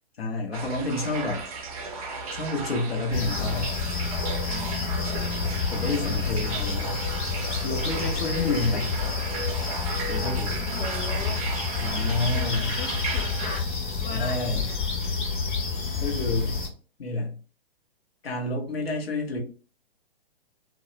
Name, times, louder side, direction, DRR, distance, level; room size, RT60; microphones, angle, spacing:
voice 1, 0.2-1.4 2.3-3.7 5.7-7.0 7.6-8.9 10.1-10.6 11.8-12.7 14.1-14.7 16.0-16.6 17.0-17.4 18.2-19.4, left 2 dB, 75° left, 0.9 m, -29 dB
sound 1, 0.5-13.6, right 4 dB, 40° right, 0.5 m, -35 dB
sound 2, 3.1-16.7, left 5 dB, 50° left, 1.1 m, -29 dB
voice 2, 4.3-5.3 10.6-11.4 12.3-14.8, left 3 dB, 25° left, 0.9 m, -39 dB
2.2 x 2.0 x 2.9 m
figure-of-eight pair, 125°, 30 cm